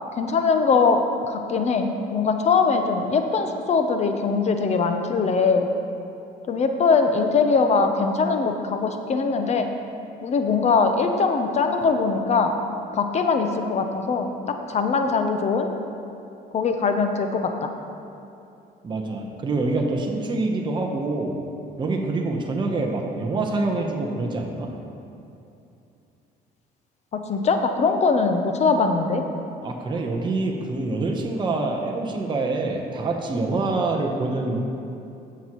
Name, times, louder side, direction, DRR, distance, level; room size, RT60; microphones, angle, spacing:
voice 1, 0.2-1.0 1.3-5.7 6.5-9.7 10.2-12.5 12.9-14.3 14.7-15.7 16.5-17.7 27.1-29.2, left 4 dB, 40° left, 6 dB, 0.7 m, -21 dB
voice 2, 18.8-21.3 21.8-24.7 29.6-34.6, right 3 dB, 25° right, 1 dB, 0.9 m, -26 dB
15.0 x 6.0 x 3.0 m, 2.7 s
cardioid pair, 110°, 17 cm